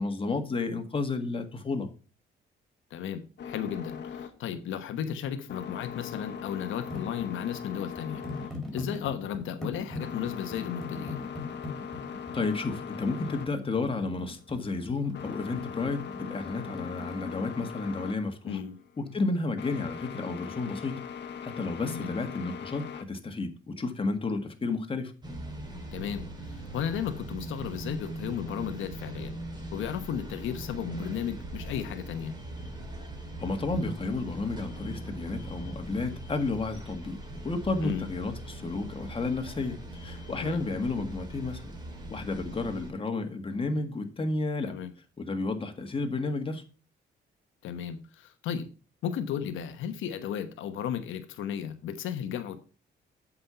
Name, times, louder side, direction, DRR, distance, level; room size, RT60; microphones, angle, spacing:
voice 1, 0.0-1.9 12.3-18.6 19.0-21.0 21.4-25.1 33.4-37.2 37.4-41.6 42.1-44.8 45.2-46.6, left 3 dB, 25° left, 1.7 m, -32 dB
voice 2, 2.9-8.2 8.7-11.2 18.5-18.7 21.9-22.1 25.9-29.4 29.7-32.3 37.8-38.0 40.4-40.6 44.7-44.9 47.6-48.7 49.0-52.6, left 8 dB, 80° left, 1.1 m, -34 dB
sound 1, 3.4-23.0, left 7 dB, 60° left, 1.3 m, -41 dB
sound 2, 6.9-17.7, left 2 dB, ahead, 3.7 m, -41 dB
sound 3, 25.2-42.9, right 1 dB, 20° right, 3.2 m, -41 dB
8.0 x 5.6 x 5.6 m
cardioid pair, 90°, 20 cm